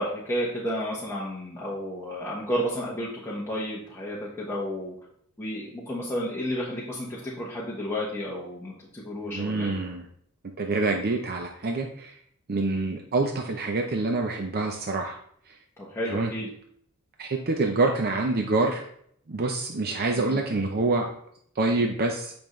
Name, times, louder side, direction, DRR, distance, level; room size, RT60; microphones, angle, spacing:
voice 1, 0.0-4.9 5.4-9.8 15.8-16.5 20.1-20.4, equal, 10° left, -6 dB, 1.1 m, -32 dB
voice 2, 9.3-10.1 10.6-12.1 12.5-15.2 16.1-16.3 17.2-18.8 19.3-21.1 21.6-22.3, right 3 dB, 45° right, 2 dB, 0.6 m, -26 dB
8.9 x 5.2 x 3.1 m, 0.67 s
head